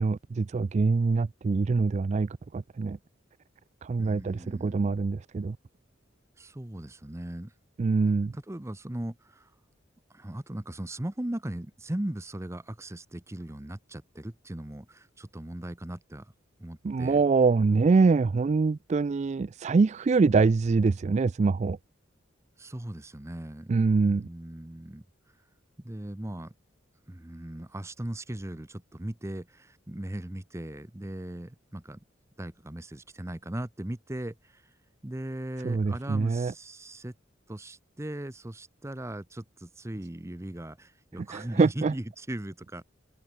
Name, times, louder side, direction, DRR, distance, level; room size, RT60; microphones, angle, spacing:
voice 1, 0.0-3.0 3.8-5.6 7.8-8.3 16.8-21.8 23.7-24.3 35.6-36.5 41.3-41.9, right 4 dB, 35° right, 0.3 m, -24 dB
voice 2, 4.0-4.9 6.4-7.5 8.1-9.5 10.1-16.3 16.6-17.2 22.6-23.8 24.1-25.0 25.8-26.5 27.1-32.0 32.4-34.7 35.0-37.1 37.5-42.8, right 1 dB, 15° right, 0.8 m, -38 dB
open air
head